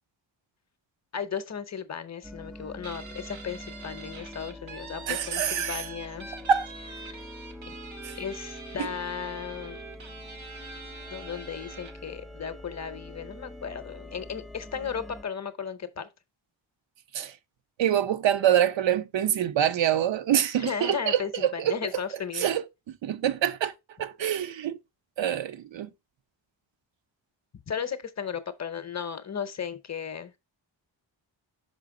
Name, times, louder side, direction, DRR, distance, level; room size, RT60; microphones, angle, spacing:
voice 1, 1.1-6.3 7.0-7.2 8.2-9.8 11.1-16.1 20.5-22.5 27.7-30.3, left 7 dB, 35° left, 0.7 m, -35 dB
sound 1, 2.2-15.2, left 1 dB, ahead, 0.3 m, -44 dB
Guitar, 2.8-12.1, right 5 dB, 90° right, 1.5 m, -45 dB
voice 2, 5.1-5.9 6.5-6.7 8.0-8.2 8.8-8.9 17.1-17.4 17.8-21.8 22.3-23.7 24.0-24.8 25.2-25.9, right 10 dB, 75° right, 0.6 m, -26 dB
5.7 x 5.1 x 3.6 m
wide cardioid pair, 170°, 46 cm